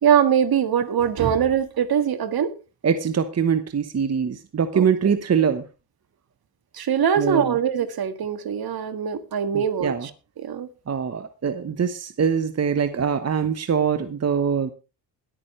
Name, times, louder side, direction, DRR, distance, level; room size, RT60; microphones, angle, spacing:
voice 1, 0.0-2.5 4.7-4.9 6.7-10.1 10.4-10.7, right 8 dB, 55° right, 1.7 m, -22 dB
voice 2, 2.8-5.6 7.2-7.6 9.5-10.1 10.9-14.7, right 7 dB, 35° right, 1.1 m, -23 dB
20.5 x 8.9 x 3.2 m
cardioid pair, 80°, 44 cm